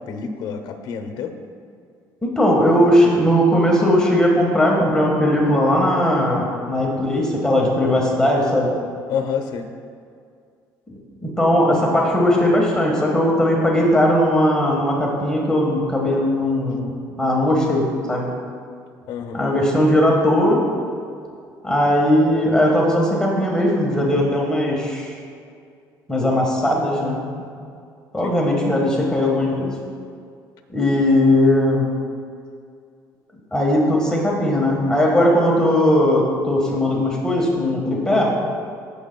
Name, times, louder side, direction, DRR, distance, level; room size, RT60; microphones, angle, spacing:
voice 1, 0.0-1.3 9.1-9.7 19.1-19.4 28.2-28.3, left 6 dB, 65° left, 7 dB, 0.8 m, -28 dB
voice 2, 2.2-8.7 11.2-18.3 19.3-20.7 21.6-25.2 26.1-27.2 28.1-29.7 30.7-31.9 33.5-38.3, left 1 dB, 10° left, -2 dB, 1.4 m, -18 dB
15.0 x 7.1 x 2.3 m, 2.3 s
cardioid pair, 115°, 8 cm